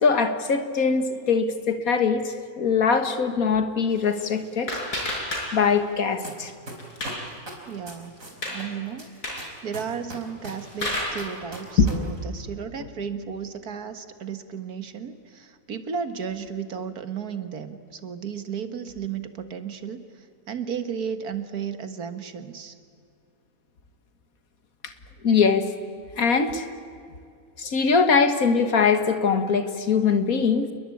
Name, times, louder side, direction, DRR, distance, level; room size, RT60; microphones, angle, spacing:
voice 1, 0.0-4.7 5.5-6.5 11.8-11.9 25.2-25.7 26.2-26.7 27.6-30.7, left 5 dB, 65° left, 9 dB, 2.0 m, -22 dB
sound 1, 3.9-5.9 6.2-7.3 7.7-7.8 8.2-8.6 9.1-9.5 10.3-11.2, left 1 dB, 80° left, 6.2 m, -31 dB
sound 2, 6.2-6.3 6.7-8.6 9.0-11.9 12.2-12.3, right 2 dB, 55° right, 4.9 m, -38 dB
voice 2, 7.7-8.1 8.5-9.1 9.6-22.8, right 7 dB, 70° right, 10 dB, 2.0 m, -34 dB
28.5 x 21.5 x 8.6 m, 2.3 s
omnidirectional pair, 1.7 m